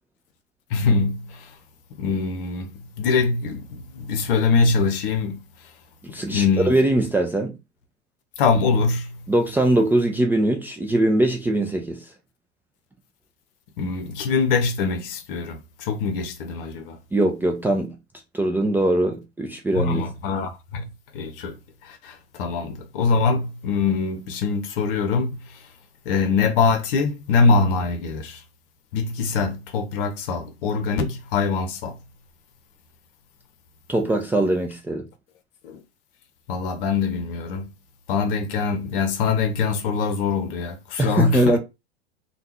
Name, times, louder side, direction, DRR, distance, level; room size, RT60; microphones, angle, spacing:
voice 1, 0.7-1.6 2.0-5.4 6.1-6.8 8.4-9.2 13.8-17.0 19.7-21.6 21.8-25.6 26.0-28.4 28.9-32.0 35.6-35.8 36.5-37.7 38.1-41.6, left 4 dB, 55° left, 0.9 m, -23 dB
voice 2, 6.1-7.6 9.3-12.0 17.1-17.9 18.3-20.0 33.9-35.1 41.0-41.6, right 1 dB, 5° right, 0.4 m, -21 dB
3.5 x 2.3 x 3.0 m
hypercardioid pair, 90°, 33 cm